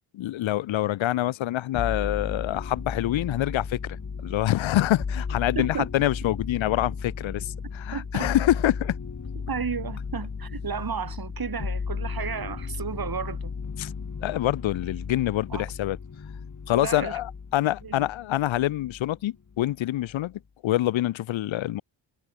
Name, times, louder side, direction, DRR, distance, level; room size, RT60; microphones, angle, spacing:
voice 1, 0.1-9.0 13.8-13.9 14.2-16.0 16.7-21.8, left 14 dB, 90° left, 0.7 m, -26 dB
sound 1, 1.7-19.2 19.5-20.3, left 5 dB, 40° left, 2.0 m, -35 dB
voice 2, 5.6-5.9 7.9-8.3 9.5-13.5 15.5-15.6 16.7-17.2 17.8-18.1, right 6 dB, 50° right, 2.2 m, -33 dB
cardioid pair, 75°, 45 cm